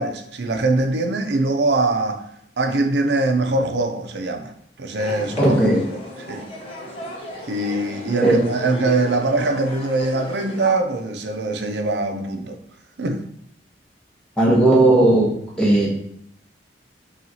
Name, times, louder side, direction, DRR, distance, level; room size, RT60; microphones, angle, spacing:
voice 1, 0.0-2.2 2.6-4.5 4.8-5.6 6.3-6.5 7.5-12.6 13.0-13.3, right 2 dB, 75° right, 0.5 m, -22 dB
sound 1, 5.0-10.7, left 1 dB, 35° left, 0.8 m, -35 dB
voice 2, 5.4-5.9 8.2-8.4 14.4-15.9, right 2 dB, 5° left, 1.0 m, -16 dB
5.6 x 2.4 x 2.8 m
head